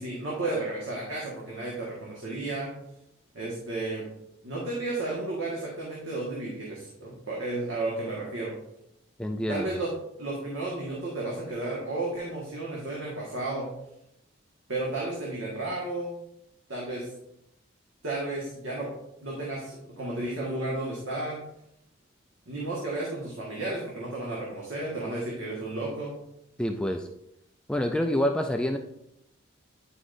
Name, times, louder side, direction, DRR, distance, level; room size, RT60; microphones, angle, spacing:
voice 1, 0.0-2.7 3.3-4.1 4.4-8.5 9.5-9.9 10.2-13.7 14.7-16.2 16.7-17.1 18.0-18.9 19.2-21.4 22.5-26.1, right 2 dB, 70° right, -4 dB, 1.6 m, -33 dB
voice 2, 9.2-9.7 26.6-27.1 27.7-28.8, equal, 5° left, 4 dB, 0.3 m, -27 dB
9.8 x 4.9 x 2.6 m, 0.80 s
head